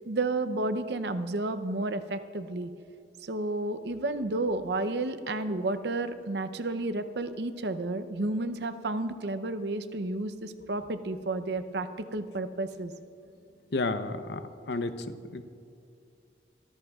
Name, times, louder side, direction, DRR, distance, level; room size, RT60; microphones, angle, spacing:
voice 1, 0.0-2.7 3.2-12.9, right 2 dB, 65° right, 11 dB, 0.7 m, -31 dB
voice 2, 13.7-14.4 14.7-14.9 15.3-15.4, left 3 dB, 70° left, 9 dB, 0.7 m, -30 dB
23.5 x 14.0 x 2.4 m, 2.4 s
head